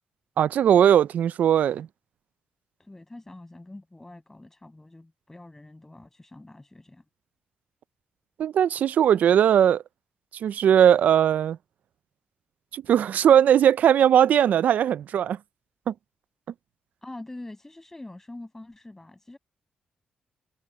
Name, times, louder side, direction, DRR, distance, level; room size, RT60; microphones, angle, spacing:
voice 1, 0.4-1.9 8.4-9.8 10.3-11.6 12.7-15.4 15.9-16.0, right 9 dB, 70° right, 0.4 m, -19 dB
voice 2, 2.8-7.0 17.0-19.4, left 2 dB, 15° left, 7.4 m, -44 dB
cardioid pair, 95°, 3 cm